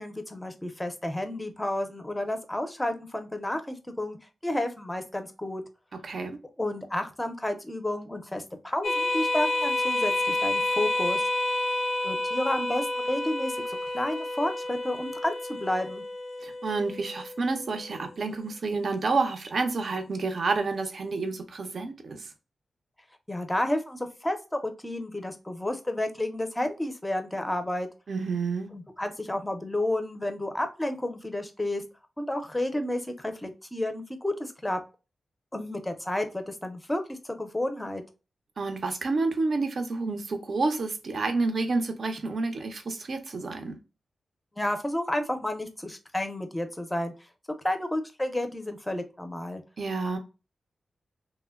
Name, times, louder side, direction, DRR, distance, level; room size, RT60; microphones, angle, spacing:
voice 1, 0.0-4.2 4.4-5.6 6.6-11.2 12.0-16.0 23.3-27.9 28.7-31.8 32.2-34.8 35.5-38.0 44.6-47.1 47.6-49.6, left 1 dB, 10° left, 0.5 m, -31 dB
voice 2, 6.0-6.4 16.4-22.3 28.1-28.7 38.6-43.8 49.8-50.2, right 3 dB, 60° right, 0.5 m, -29 dB
sound 1, 8.8-17.8, left 2 dB, 90° left, 0.5 m, -29 dB
3.0 x 2.1 x 2.2 m
cardioid pair, 80°, 0 cm